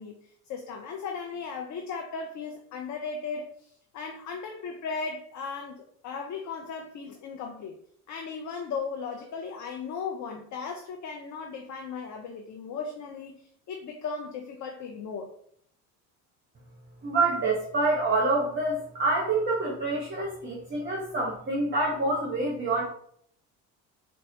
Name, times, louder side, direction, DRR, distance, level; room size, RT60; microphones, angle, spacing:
voice 1, 0.0-7.7 8.1-15.3, left 5 dB, 40° left, 3 dB, 0.6 m, -37 dB
voice 2, 17.0-22.9, right 2 dB, 25° right, -3 dB, 1.0 m, -27 dB
4.1 x 2.2 x 2.8 m, 0.63 s
hypercardioid pair, 70°, 46 cm